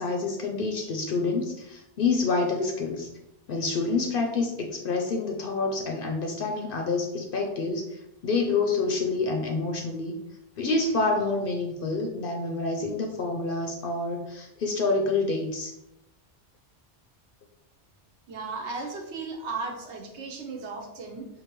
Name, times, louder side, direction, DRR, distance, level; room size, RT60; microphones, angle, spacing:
voice 1, 0.0-3.1 3.5-10.2 10.6-15.7, left 3 dB, 60° left, 2 dB, 0.6 m, -27 dB
voice 2, 18.3-21.3, right 4 dB, 70° right, 3 dB, 1.0 m, -35 dB
4.5 x 2.6 x 2.9 m, 0.87 s
omnidirectional pair, 1.2 m